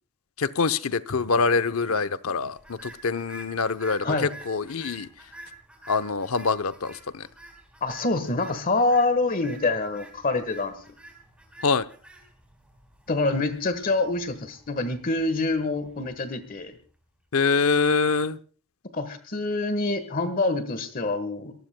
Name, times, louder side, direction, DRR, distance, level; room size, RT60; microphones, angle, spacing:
voice 1, 0.4-5.1 5.9-7.2 11.6-11.8 17.3-18.4, left 4 dB, 85° left, 0.8 m, -25 dB
sound 1, 2.6-16.9, right 2 dB, 5° right, 4.4 m, -49 dB
voice 2, 7.8-10.7 13.1-16.8 18.9-21.5, left 2 dB, 40° left, 1.4 m, -26 dB
25.5 x 19.0 x 2.2 m
head